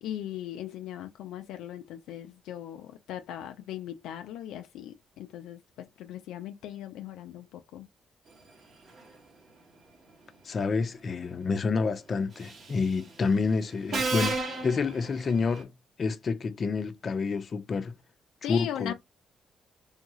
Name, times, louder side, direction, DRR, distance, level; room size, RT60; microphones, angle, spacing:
voice 1, 0.0-7.9 18.4-18.9, left 11 dB, 90° left, 0.3 m, -39 dB
voice 2, 10.4-15.7 16.0-18.0 18.5-18.9, left 4 dB, 50° left, 0.6 m, -28 dB
Subway metro underground, 12.4-12.8 13.9-15.6, right 3 dB, 60° right, 1.1 m, -32 dB
3.5 x 2.3 x 3.0 m
cardioid pair, 70°, 0 cm